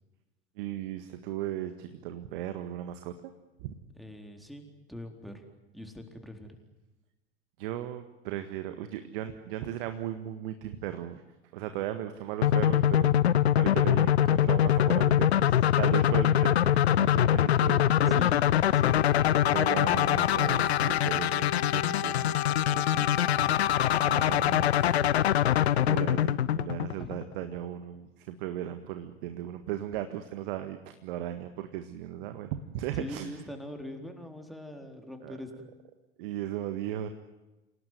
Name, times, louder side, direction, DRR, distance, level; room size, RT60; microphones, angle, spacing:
voice 1, 0.6-3.3 3.6-3.7 7.6-11.2 11.5-13.1 13.5-18.2 18.8-19.1 19.5-22.4 22.7-23.7 24.0-25.1 25.8-33.4 35.2-35.3 36.2-37.1, right 12 dB, 55° right, 9 dB, 1.7 m, -37 dB
voice 2, 3.9-5.4 5.7-6.6 18.1-18.4 18.8-19.0 26.9-27.1 32.9-35.7, left 1 dB, ahead, 4 dB, 4.1 m, -42 dB
sound 1, 12.4-27.3, left 11 dB, 70° left, 0.8 m, -24 dB
Wind instrument woodwind instrument, 18.7-26.4, left 12 dB, 50° left, 1.9 m, -36 dB
28.0 x 18.0 x 9.4 m, 1.1 s
figure-of-eight pair, 80°, 33 cm